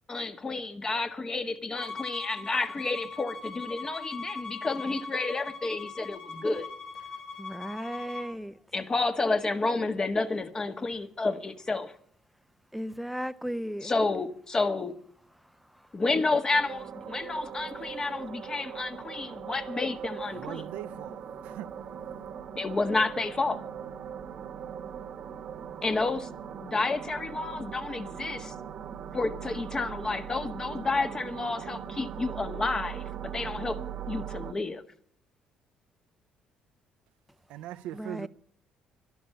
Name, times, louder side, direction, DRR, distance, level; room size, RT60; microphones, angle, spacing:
voice 1, 0.1-6.7 8.7-11.9 13.8-14.9 15.9-20.6 22.5-23.6 25.8-26.3 26.6-28.5 29.1-33.8 34.1-34.8, left 3 dB, 30° left, 1.5 m, -30 dB
Bowed string instrument, 1.8-8.3, left 4 dB, 65° left, 3.8 m, -40 dB
voice 2, 7.4-8.5 12.7-13.9 37.9-38.3, equal, ahead, 0.7 m, -35 dB
sound 1, 16.5-34.5, right 8 dB, 60° right, 1.3 m, -40 dB
voice 3, 20.3-21.7 37.5-38.3, right 13 dB, 80° right, 0.7 m, -40 dB
11.5 x 11.5 x 8.3 m
supercardioid pair, 70°, 2 cm